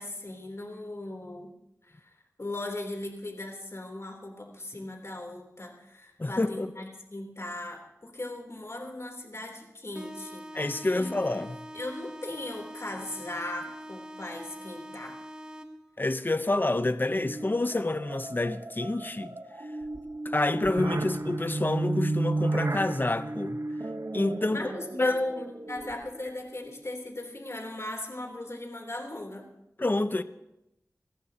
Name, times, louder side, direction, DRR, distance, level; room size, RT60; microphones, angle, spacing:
voice 1, 0.0-1.5 1.8-2.1 2.4-6.8 7.1-10.4 10.9-11.1 11.7-15.2 24.5-29.5, left 1 dB, 50° left, 3.4 m, -38 dB
voice 2, 6.2-6.7 10.5-11.6 16.0-19.4 20.2-23.6 24.1-24.7 25.0-25.2 29.8-30.2, left 2 dB, 35° left, 0.8 m, -28 dB
sound 1, 9.9-15.9, equal, 15° right, 1.1 m, -44 dB
sound 2, 17.2-26.3, right 2 dB, 55° right, 1.0 m, -33 dB
29.5 x 14.5 x 2.9 m
wide cardioid pair, 65°, 6 cm